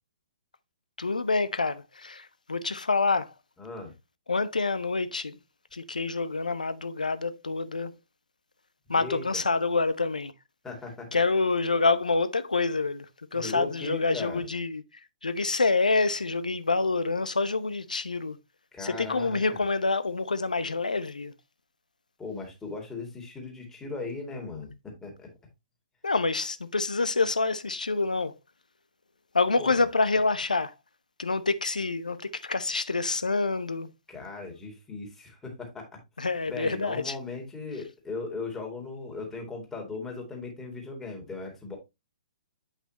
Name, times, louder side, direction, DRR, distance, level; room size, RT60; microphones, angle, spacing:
voice 1, 1.0-3.3 4.3-5.4 5.7-8.0 8.9-10.3 11.1-14.8 15.2-18.4 18.8-21.3 26.0-28.3 29.3-30.7 31.2-33.9 36.2-37.2, left 3 dB, 75° left, 0.8 m, -27 dB
voice 2, 3.6-3.9 8.9-9.4 10.6-11.1 13.3-14.4 18.7-19.6 22.2-24.7 25.0-25.3 29.6-29.8 34.1-36.0 36.5-41.8, left 3 dB, 10° left, 2.5 m, -38 dB
8.3 x 5.6 x 3.0 m
figure-of-eight pair, 125°, 4 cm